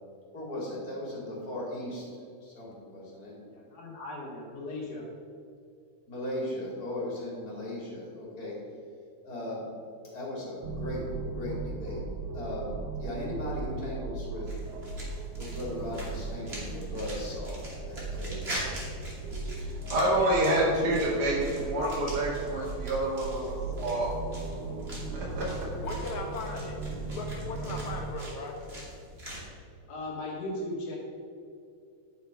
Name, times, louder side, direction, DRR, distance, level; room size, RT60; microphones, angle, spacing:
voice 1, 0.3-2.1 2.4-3.4 6.1-8.6 9.2-9.7 10.1-11.0 11.3-12.0 12.3-12.7 13.0-14.5 15.4-18.7, left 1 dB, 30° left, -4 dB, 3.2 m, -37 dB
voice 2, 3.5-5.1 27.1-27.2 27.6-27.8 29.9-31.0, left 1 dB, 90° left, -5 dB, 3.5 m, -38 dB
sound 1, 10.6-28.1, right 3 dB, 65° right, 2.0 m, -37 dB
sound 2, 14.5-29.5, right 1 dB, 20° right, 2.4 m, -43 dB
voice 3, 19.6-24.1 25.1-25.7, right 1 dB, 85° right, -7 dB, 3.8 m, -28 dB
voice 4, 25.8-28.7, left 3 dB, 70° left, 1 dB, 2.6 m, -38 dB
10.5 x 7.3 x 5.6 m, 2.5 s
omnidirectional pair, 3.5 m